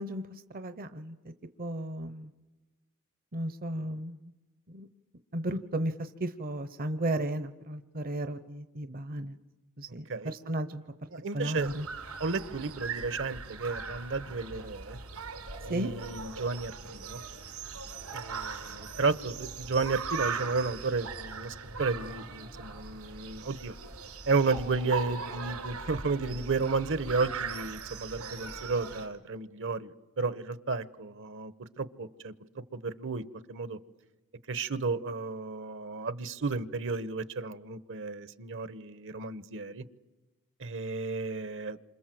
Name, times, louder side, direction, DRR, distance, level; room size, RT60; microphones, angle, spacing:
voice 1, 0.0-1.3 1.6-2.3 3.3-4.3 4.7-4.9 5.3-9.4 9.8-10.8 11.3-11.9 15.7-15.9, right 1 dB, 40° right, 10 dB, 0.9 m, -34 dB
voice 2, 11.1-11.7 12.2-15.0 15.6-17.2 18.1-23.7 24.3-32.3 32.7-33.2 33.5-33.8 34.5-39.8 40.6-41.8, right 4 dB, 60° right, 14 dB, 1.1 m, -33 dB
sound 1, 11.6-29.1, right 5 dB, 85° right, 4.4 m, -40 dB
28.0 x 26.0 x 7.8 m, 1.1 s
head